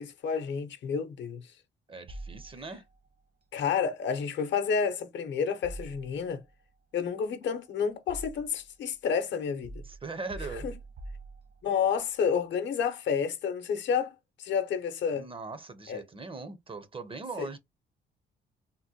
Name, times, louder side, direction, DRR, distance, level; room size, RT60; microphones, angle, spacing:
voice 1, 0.0-1.4 3.5-6.4 6.9-9.8 10.6-10.7 11.6-14.1 14.4-15.3 15.9-16.0 17.4-17.5, left 6 dB, 65° left, 0.7 m, -30 dB
voice 2, 1.9-2.8 9.8-10.7 15.1-17.6, right 4 dB, 25° right, 0.6 m, -40 dB
sound 1, 2.1-3.0 5.6-6.5 7.4-8.7 9.6-11.9, right 2 dB, 55° right, 1.0 m, -44 dB
3.6 x 2.1 x 2.7 m
cardioid pair, 90°, 20 cm